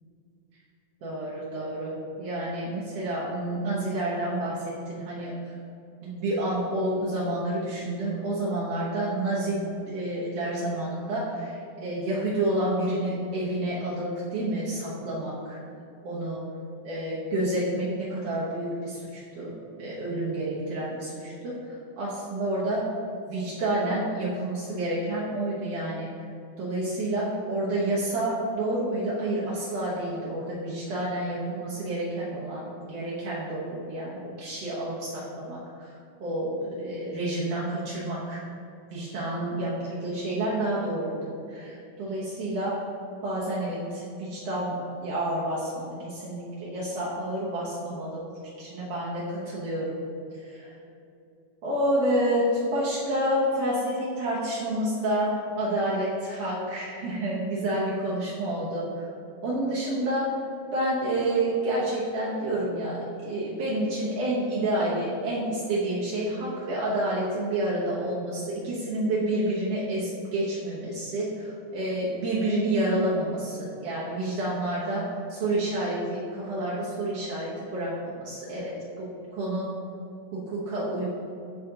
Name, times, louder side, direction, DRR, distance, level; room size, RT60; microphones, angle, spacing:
voice 1, 1.0-5.3 6.0-15.6 16.0-16.4 16.8-22.9 23.3-26.1 26.6-38.4 38.9-42.8 43.2-48.2 48.6-49.9 50.3-50.7 51.6-58.9 59.4-60.3 60.7-78.7 79.0-79.7 80.3-81.1, right 1 dB, 80° right, -7 dB, 1.4 m, -29 dB
11.0 x 3.8 x 2.7 m, 2.7 s
omnidirectional pair, 4.1 m